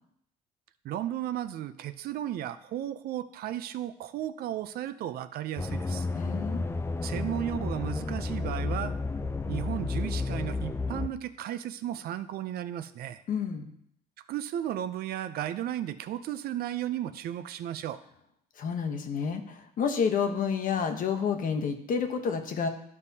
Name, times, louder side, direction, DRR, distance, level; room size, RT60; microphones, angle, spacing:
voice 1, 0.8-6.1 7.0-9.0 9.5-13.2 14.3-18.0, right 12 dB, 65° right, 12 dB, 0.5 m, -34 dB
sound 1, 5.6-11.1, left 3 dB, 15° left, 0.4 m, -32 dB
voice 2, 6.1-6.6 13.3-13.7 18.6-22.7, left 6 dB, 50° left, 6 dB, 1.0 m, -29 dB
12.0 x 5.3 x 2.8 m, 0.71 s
cardioid pair, 110°, 17 cm